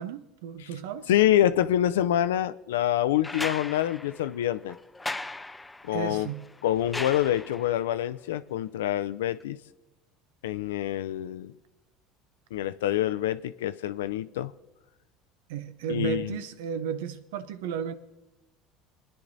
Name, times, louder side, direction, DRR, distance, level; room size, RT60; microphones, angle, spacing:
voice 1, 0.0-1.1 5.9-6.5 15.5-17.9, right 8 dB, 80° right, 0.7 m, -34 dB
voice 2, 1.1-4.8 5.8-6.3 6.6-9.6 10.4-11.5 12.5-14.5 15.9-16.4, left 12 dB, 85° left, 0.4 m, -26 dB
sound 1, 3.2-7.9 9.4-9.5, left 2 dB, 15° left, 0.4 m, -38 dB
23.0 x 10.0 x 2.7 m
hypercardioid pair, 80°, 0 cm